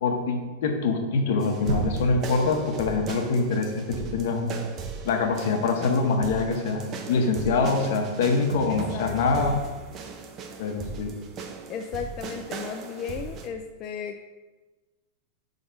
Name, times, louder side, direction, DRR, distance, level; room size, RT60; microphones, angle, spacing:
voice 1, 0.0-4.5 5.0-9.6 10.6-11.2, left 4 dB, 65° left, 3 dB, 1.1 m, -25 dB
sound 1, 1.4-13.5, right 4 dB, 30° right, 0.7 m, -38 dB
sound 2, 1.7-3.6, right 4 dB, 80° right, 0.9 m, -31 dB
voice 2, 8.7-9.6 11.7-14.2, left 7 dB, 35° left, 4 dB, 0.4 m, -35 dB
5.8 x 4.0 x 5.1 m, 1.2 s
supercardioid pair, 150°, 0 cm